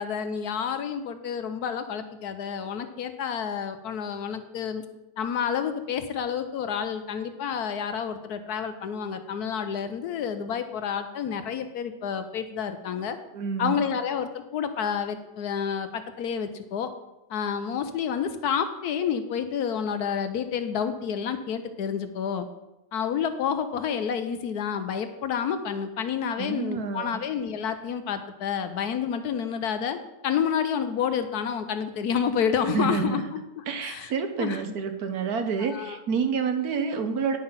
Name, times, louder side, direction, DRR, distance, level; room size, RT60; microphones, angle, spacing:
voice 1, 0.0-4.8 5.2-13.2 13.6-16.9 17.3-22.5 22.9-34.1 34.4-34.6 35.6-36.0, left 7 dB, 70° left, 9 dB, 1.1 m, -29 dB
voice 2, 13.3-13.8 26.4-27.2 32.6-33.2 33.7-37.4, right 5 dB, 65° right, 7 dB, 1.2 m, -28 dB
10.0 x 5.6 x 5.6 m, 0.95 s
omnidirectional pair, 1.9 m